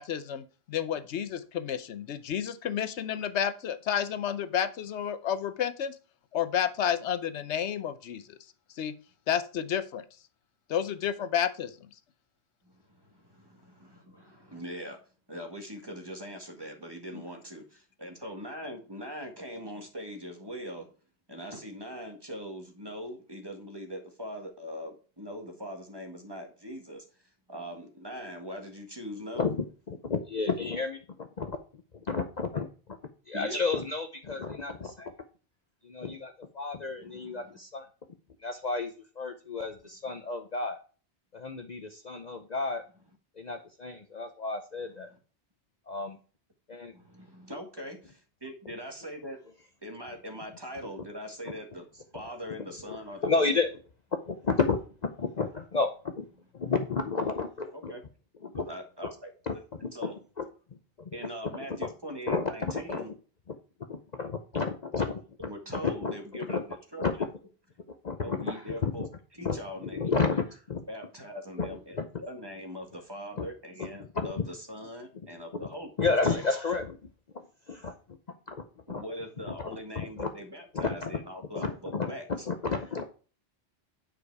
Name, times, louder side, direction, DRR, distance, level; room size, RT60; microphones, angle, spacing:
voice 1, 0.0-5.9 6.3-8.2 8.8-8.9 9.3-10.0 10.7-11.7 17.1-17.2, left 9 dB, 80° left, 1.0 m, -31 dB
voice 2, 12.6-15.0 15.3-20.9 21.3-27.0 27.5-29.5 33.3-33.6 37.0-37.5 40.1-40.2 45.1-45.2 46.9-49.4 49.8-51.9 52.1-53.6 57.7-58.0 58.7-59.3 59.9-60.2 61.1-63.1 65.0-65.1 65.4-67.3 68.2-69.1 69.4-70.1 70.9-76.4 78.9-82.5, equal, 20° right, 1.7 m, -41 dB
voice 3, 29.9-31.6 32.1-32.7 33.3-35.1 35.8-37.9 38.4-40.8 41.3-42.8 43.4-45.1 45.9-46.2 46.7-46.9 53.2-53.7 54.1-54.8 55.2-56.3 56.5-57.9 58.4-58.6 59.5-59.6 59.8-60.1 60.4-60.5 61.0-61.1 61.8-61.9 62.3-63.0 63.5-63.6 63.9-65.2 65.8-66.1 66.5-66.6 67.0-67.1 68.0-69.1 69.4-70.8 71.6-71.7 72.0-72.1 73.4-73.5 74.1-74.3 76.0-77.0 77.3-77.9 78.5-79.0 79.5-80.3 80.7-81.1 81.6-83.0, left 4 dB, 45° left, 0.8 m, -31 dB
9.3 x 5.1 x 4.7 m
omnidirectional pair, 1.1 m